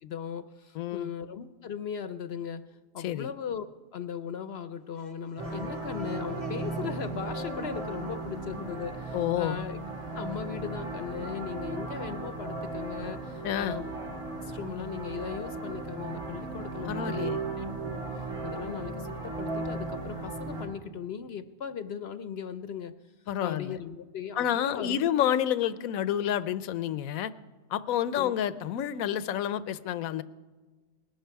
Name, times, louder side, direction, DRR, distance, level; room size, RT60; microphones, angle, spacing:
voice 1, 0.0-2.6 2.9-3.7 3.9-9.8 10.1-13.9 14.4-17.3 17.6-17.7 18.0-22.9 23.4-25.1 28.1-28.3, left 7 dB, 60° left, 11 dB, 0.7 m, -38 dB
voice 2, 0.7-1.1 3.0-3.3 9.1-9.6 13.4-13.8 16.9-17.4 23.3-23.8 24.4-27.3 27.7-30.2, left 10 dB, 85° left, 15 dB, 1.1 m, -29 dB
sound 1, 4.7-9.5, right 2 dB, 30° right, 1.6 m, -50 dB
sound 2, 5.4-20.7, right 3 dB, 75° right, 2.7 m, -36 dB
20.0 x 11.5 x 4.6 m, 1.3 s
omnidirectional pair, 1.4 m